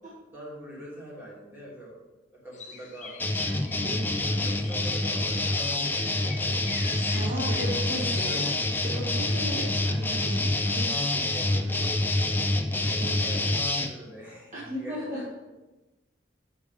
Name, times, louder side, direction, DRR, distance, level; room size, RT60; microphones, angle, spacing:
voice 1, 0.1-2.0 2.3-3.7 4.2-7.1 8.0-9.2 11.3-15.5, right 1 dB, 10° right, -7 dB, 3.2 m, -44 dB
sound 1, 2.5-8.3, left 5 dB, 40° left, 0.8 m, -45 dB
sound 2, 3.2-13.9, left 2 dB, 10° left, 0.5 m, -27 dB
voice 2, 3.5-4.1 7.1-8.5 8.8-10.9 13.0-13.2 14.5-15.2, right 1 dB, 40° right, -6 dB, 1.6 m, -35 dB
8.6 x 6.5 x 4.9 m, 1.1 s
head